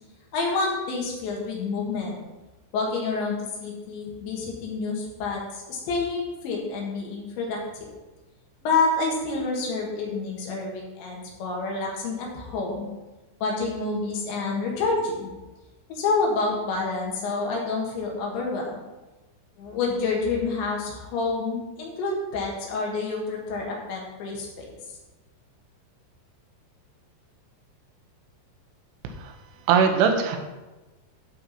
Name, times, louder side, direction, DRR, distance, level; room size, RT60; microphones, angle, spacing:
voice 1, 0.3-2.2 2.7-7.9 8.6-12.9 13.4-15.3 15.9-18.8 19.6-24.8, left 3 dB, 70° left, -2 dB, 3.8 m, -28 dB
voice 2, 29.7-30.4, right 6 dB, 85° right, 5 dB, 3.4 m, -20 dB
12.0 x 4.5 x 5.7 m, 1.1 s
omnidirectional pair, 5.5 m